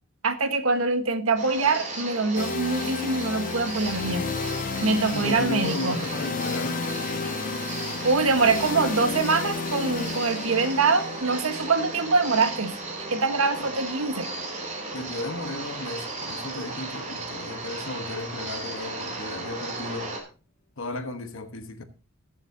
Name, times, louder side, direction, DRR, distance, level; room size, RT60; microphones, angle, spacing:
voice 1, 0.2-4.3 4.8-6.0 8.0-12.7 13.1-14.3, right 4 dB, 75° right, 1.4 m, -24 dB
sound 1, 1.4-20.2, right 3 dB, 35° right, 3.0 m, -35 dB
sound 2, 2.4-16.2, left 4 dB, 40° left, 0.5 m, -33 dB
voice 2, 5.1-6.9 14.9-20.1 20.8-21.8, left 2 dB, 65° left, 1.2 m, -34 dB
20.5 x 7.2 x 2.8 m
head